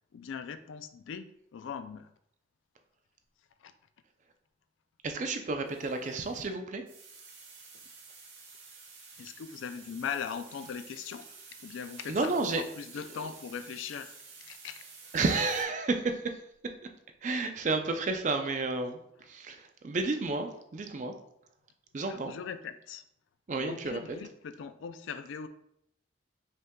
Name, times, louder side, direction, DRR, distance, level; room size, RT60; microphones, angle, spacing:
voice 1, 0.1-2.1 3.6-3.7 9.2-11.3 11.6-14.1 14.4-14.8 22.1-23.0 23.6-25.5, left 7 dB, 75° left, 11 dB, 0.3 m, -40 dB
voice 2, 5.0-6.8 12.1-12.6 15.1-16.4 17.2-19.0 19.3-21.1 21.9-22.3 23.5-24.0, right 3 dB, 40° right, 6 dB, 0.4 m, -31 dB
sound 1, 5.6-6.5 6.9-15.6, right 4 dB, 70° right, 1.2 m, -51 dB
5.4 x 3.6 x 2.2 m, 0.74 s
head